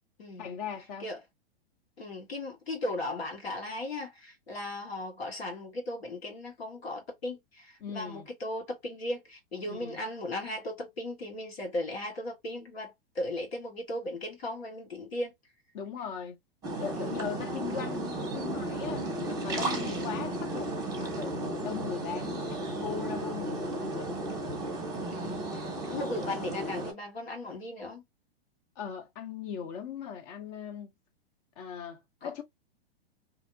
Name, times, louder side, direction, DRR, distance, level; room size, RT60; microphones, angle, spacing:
voice 1, 0.4-1.1 7.8-8.3 9.7-10.0 15.7-16.4 16.8-19.1 19.4-24.1 28.8-30.9 31.6-32.4, left 7 dB, 40° left, 0.8 m, -39 dB
voice 2, 2.0-15.3 16.9-17.3 19.7-20.0 25.1-28.0 32.2-32.3, left 1 dB, 80° left, 1.3 m, -37 dB
sound 1, 16.6-26.9, right 1 dB, 10° right, 0.9 m, -34 dB
2.7 x 2.0 x 2.5 m
hypercardioid pair, 115°, 30 cm